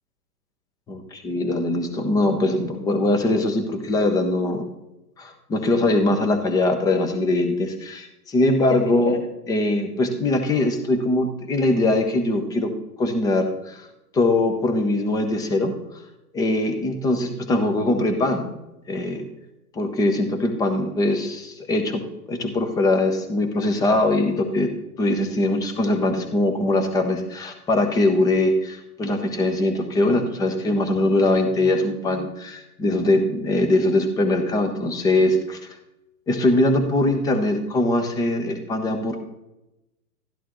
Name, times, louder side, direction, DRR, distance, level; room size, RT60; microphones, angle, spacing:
voice 1, 0.9-4.6 5.2-9.2 9.5-12.7 13.0-13.9 14.1-15.7 16.3-18.4 18.9-19.3 19.7-35.6 36.3-39.2, left 2 dB, 10° left, 7 dB, 0.6 m, -22 dB
12.5 x 11.0 x 3.0 m, 0.94 s
hypercardioid pair, 130°, 47 cm